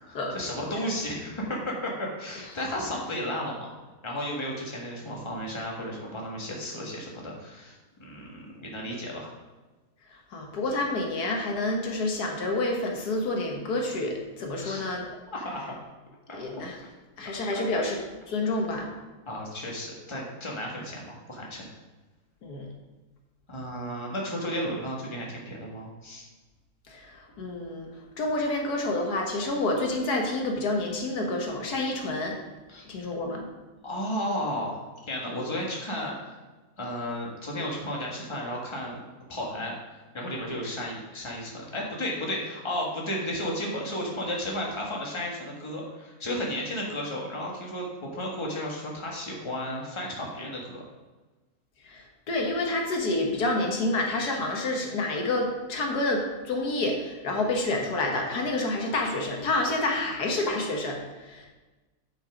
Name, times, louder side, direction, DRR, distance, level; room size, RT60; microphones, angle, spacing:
voice 1, 0.0-3.7 4.0-9.3 14.5-14.9 15.3-15.8 16.3-16.6 17.5-17.8 19.3-21.7 23.5-26.3 32.7-32.8 33.8-36.4 36.8-39.0 39.3-50.8, equal, 20° left, -2 dB, 1.6 m, -33 dB
voice 2, 10.3-15.0 16.3-16.8 17.2-18.0 18.3-18.9 22.4-22.7 26.9-27.9 28.2-32.4 32.9-33.5 51.8-61.5, left 2 dB, 80° left, 1 dB, 1.8 m, -28 dB
8.7 x 5.5 x 5.1 m, 1.2 s
omnidirectional pair, 1.6 m